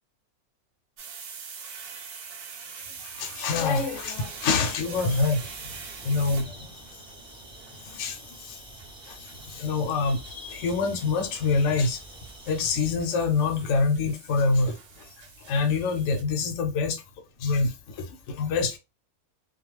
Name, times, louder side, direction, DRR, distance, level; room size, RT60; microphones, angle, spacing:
sound 1, 1.0-16.2, right 6 dB, 65° right, 0.6 m, -45 dB
voice 1, 3.0-6.7 7.9-8.6 9.1-12.0 12.5-14.8 15.4-17.0 17.4-18.8, left 4 dB, 65° left, 0.9 m, -26 dB
sound 2, 4.2-12.9, right 1 dB, 10° right, 0.3 m, -48 dB
2.4 x 2.2 x 3.1 m
omnidirectional pair, 1.5 m